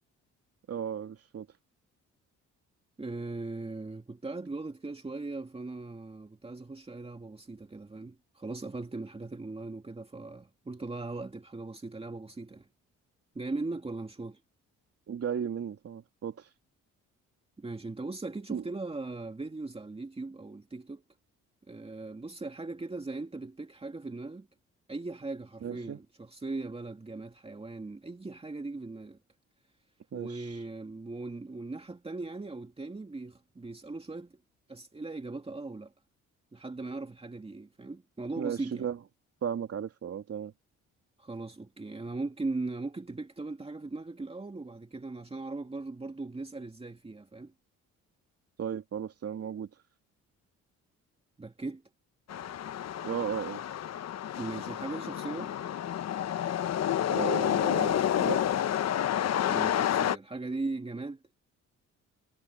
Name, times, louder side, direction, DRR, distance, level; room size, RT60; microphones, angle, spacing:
voice 1, 0.7-1.5 15.1-16.5 18.5-18.6 25.6-26.0 30.1-30.5 38.4-39.0 39.4-40.5 48.6-49.7 53.0-53.6 57.1-58.5, right 8 dB, 50° right, 3.0 m, -35 dB
voice 2, 3.0-12.7 13.3-14.4 17.6-21.0 21.6-24.5 24.9-29.2 30.1-34.4 34.7-35.9 36.5-38.9 41.2-47.5 51.4-51.8 54.4-55.5 59.5-61.2, right 3 dB, 20° right, 2.3 m, -39 dB
sound 1, 52.3-60.2, left 10 dB, 60° left, 1.1 m, -29 dB
cardioid pair, 90°, 30 cm